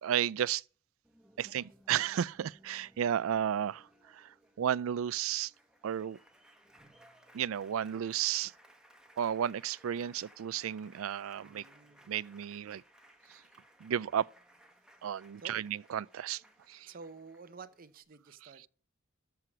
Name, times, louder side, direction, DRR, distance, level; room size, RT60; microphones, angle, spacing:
voice 1, 0.0-0.6 1.4-3.9 4.1-5.5 5.8-6.2 7.3-8.5 9.2-11.6 12.1-12.8 13.8-14.3 15.0-16.4 16.7-16.9, right 9 dB, 85° right, 0.4 m, -33 dB
Applause, 1.0-18.0, right 1 dB, 5° right, 1.2 m, -62 dB
voice 2, 11.4-12.0 15.4-15.6 16.8-18.6, right 4 dB, 45° right, 0.7 m, -51 dB
13.5 x 4.8 x 6.0 m
head